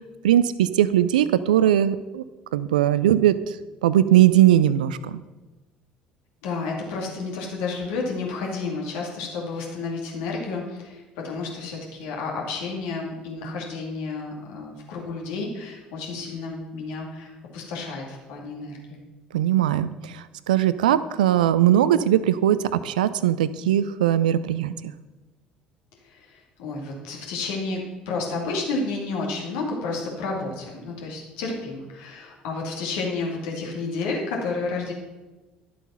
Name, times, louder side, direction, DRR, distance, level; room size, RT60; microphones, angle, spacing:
voice 1, 0.2-2.2 2.5-3.4 3.8-5.2 19.3-24.9, right 12 dB, 70° right, 15 dB, 0.4 m, -20 dB
voice 2, 6.4-19.0 26.1-27.8 28.1-34.9, left 3 dB, 65° left, -1 dB, 2.3 m, -31 dB
11.0 x 7.6 x 5.6 m, 1.2 s
figure-of-eight pair, 55°, 4 cm